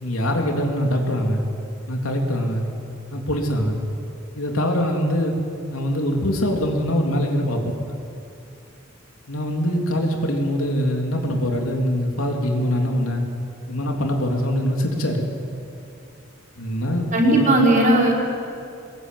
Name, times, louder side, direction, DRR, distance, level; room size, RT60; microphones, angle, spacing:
voice 1, 0.0-1.4 1.9-2.7 3.1-3.8 4.4-5.4 5.7-7.7 9.3-13.2 13.7-15.3 16.6-17.6, equal, 90° left, 2 dB, 3.4 m, -23 dB
voice 2, 17.1-18.2, right 1 dB, 40° right, -2 dB, 5.4 m, -17 dB
23.0 x 21.0 x 9.5 m, 2.6 s
head